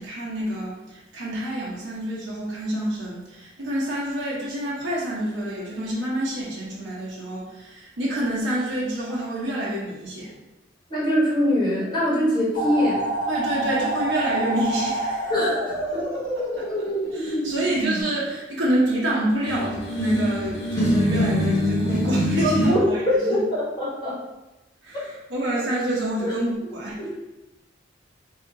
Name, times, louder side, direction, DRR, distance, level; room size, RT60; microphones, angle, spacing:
voice 1, 0.0-10.3 13.3-15.3 16.1-23.4 24.8-27.0, right 1 dB, 75° right, -6 dB, 1.0 m, -27 dB
voice 2, 10.9-13.0 15.3-15.6 15.9-16.0 22.4-22.8 23.3-24.2 26.2-26.3, equal, 25° left, -8 dB, 1.3 m, -23 dB
sound 1, 12.5-18.0, right 1 dB, 40° left, 0.8 m, -27 dB
sound 2, 19.5-22.7, left 1 dB, 70° left, 1.0 m, -23 dB
4.1 x 2.8 x 2.7 m, 1.0 s
head